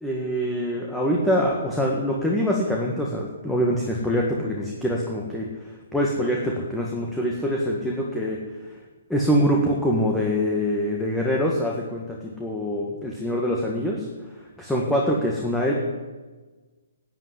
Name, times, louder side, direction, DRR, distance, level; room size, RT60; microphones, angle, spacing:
voice 1, 0.0-5.5 5.9-8.4 9.1-14.1 14.6-15.7, equal, 5° left, -2 dB, 1.8 m, -24 dB
11.0 x 8.2 x 9.8 m, 1.3 s
hypercardioid pair, 135°, 0 cm